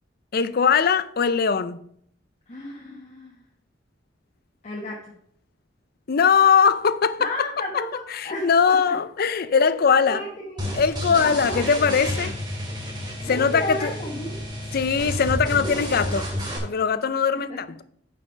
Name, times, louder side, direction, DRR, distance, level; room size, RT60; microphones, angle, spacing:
voice 1, 0.3-1.8 6.1-7.3 8.1-10.2 10.7-12.4 13.3-13.9 14.7-16.3 16.6-17.8, left 6 dB, 55° left, 0.5 m, -21 dB
voice 2, 2.5-3.4 4.6-5.2 7.2-9.0 9.4-9.8 10.0-10.8 11.2-11.9 13.2-14.4 17.3-17.6, left 1 dB, 40° left, 1.2 m, -33 dB
sound 1, 10.6-16.6, equal, 25° right, 2.8 m, -30 dB
9.3 x 5.7 x 5.2 m
head